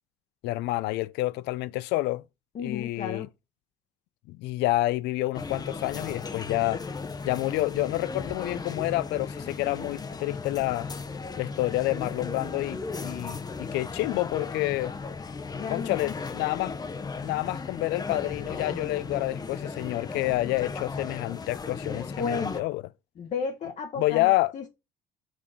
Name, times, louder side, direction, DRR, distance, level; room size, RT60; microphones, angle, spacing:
voice 1, 0.4-2.2 2.6-3.3 4.3-6.8 7.2-10.9 11.4-14.9 15.7-16.8 17.2-22.8 24.0-24.5, left 18 dB, 85° left, 0.4 m, -28 dB
voice 2, 2.5-3.3 15.5-16.1 22.1-22.7 23.2-24.7, left 5 dB, 50° left, 1.0 m, -34 dB
sound 1, 5.3-22.6, left 4 dB, 25° left, 0.7 m, -36 dB
6.3 x 3.7 x 5.0 m
cardioid pair, 110°, 17 cm